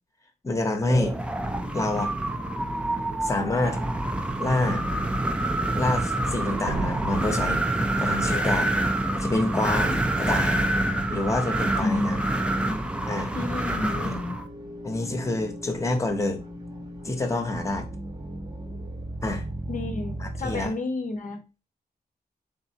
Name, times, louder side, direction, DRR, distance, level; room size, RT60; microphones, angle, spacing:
voice 1, 0.4-1.2 1.7-2.1 3.2-3.8 4.4-4.8 5.7-7.6 8.0-8.7 9.2-10.6 11.1-12.2 13.1-13.3 13.8-14.1 14.8-16.4 17.0-17.9 19.2-19.5 20.2-20.7, left 2 dB, 20° left, 0.8 m, -27 dB
Wind, 0.8-14.5, right 1 dB, 5° right, 0.4 m, -27 dB
sound 1, 1.5-20.7, right 1 dB, 25° right, 0.7 m, -36 dB
Slam, 3.5-3.6 4.2-4.6 6.7-8.6 8.8-8.9, right 3 dB, 55° right, 0.8 m, -36 dB
voice 2, 11.8-12.8 13.3-14.4 19.7-21.4, left 2 dB, 50° left, 0.6 m, -31 dB
4.1 x 3.7 x 2.7 m
wide cardioid pair, 160°, 17 cm